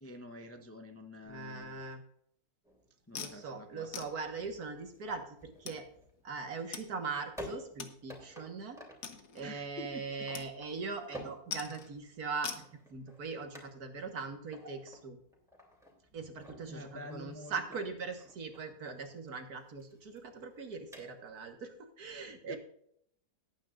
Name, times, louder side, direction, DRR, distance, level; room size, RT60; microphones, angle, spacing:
voice 1, 0.0-1.8 3.1-3.9 9.4-10.3 16.7-17.6 22.5-22.6, left 1 dB, 15° left, 5 dB, 0.5 m, -47 dB
voice 2, 1.3-2.0 3.1-5.8 6.2-8.8 9.3-12.6 12.9-15.2 16.1-22.6, right 4 dB, 65° right, 5 dB, 2.0 m, -41 dB
sound 1, 2.6-21.5, equal, ahead, 2.9 m, -53 dB
sound 2, 3.1-3.4 3.9-4.1 5.0-5.1 5.7-5.8 6.7-6.8 7.2-7.3 7.8-8.0 8.4-8.5 9.0-9.5 10.3-10.5 10.8-11.1 11.5-11.9 12.4-12.7, left 7 dB, 70° left, 1.6 m, -42 dB
18.0 x 9.3 x 2.5 m, 0.69 s
omnidirectional pair, 1.8 m